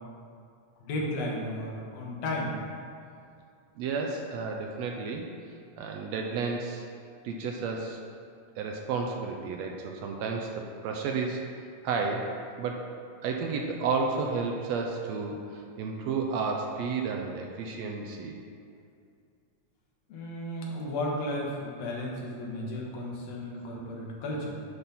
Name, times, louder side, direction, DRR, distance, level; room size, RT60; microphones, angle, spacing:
voice 1, 0.8-2.5 20.1-24.6, left 1 dB, 65° left, -2 dB, 2.3 m, -34 dB
voice 2, 3.8-5.3 5.8-6.9 7.2-8.0 8.6-11.4 11.8-12.3 12.6-12.8 13.2-18.4 22.6-22.8, right 4 dB, 75° right, 1 dB, 1.7 m, -32 dB
10.0 x 5.3 x 4.2 m, 2.3 s
omnidirectional pair, 3.4 m